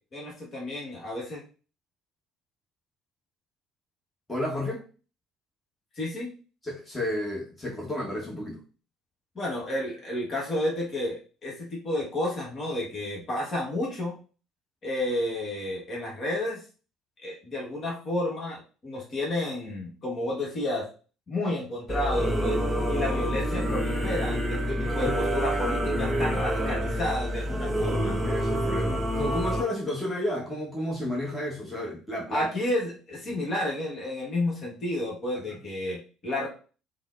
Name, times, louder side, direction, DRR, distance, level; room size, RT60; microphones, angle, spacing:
voice 1, 0.1-1.4 6.0-6.3 9.3-14.2 14.8-16.6 17.2-20.9 21.3-22.6 22.9-24.6 24.9-28.3 32.3-36.5, left 1 dB, 40° left, -3 dB, 1.2 m, -31 dB
voice 2, 4.3-4.9 6.6-8.6 24.6-25.1 25.5-25.6 26.1-26.4 28.2-32.5, left 1 dB, 15° left, -4 dB, 1.1 m, -32 dB
Singing / Musical instrument, 21.9-29.6, equal, 10° right, 0.7 m, -27 dB
3.8 x 2.1 x 2.4 m, 0.36 s
figure-of-eight pair, 55°, 0 cm